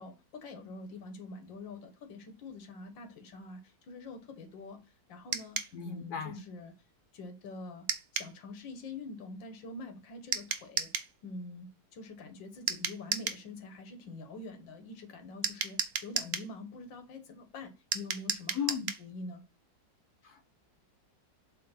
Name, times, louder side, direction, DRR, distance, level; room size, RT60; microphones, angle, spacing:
voice 1, 0.0-4.8 5.1-5.6 5.9-6.7 7.1-7.9 8.1-10.9 11.2-19.4, left 2 dB, 85° left, 2.0 m, -45 dB
sound 1, 5.3-5.7 7.9-8.3 10.3-11.1 12.7-13.4 15.4-16.5 17.9-19.0, right 6 dB, 55° right, 0.7 m, -34 dB
voice 2, 5.7-6.4 18.5-18.9 20.2-20.4, left 7 dB, 60° left, 1.4 m, -36 dB
7.7 x 3.2 x 5.7 m
omnidirectional pair, 2.0 m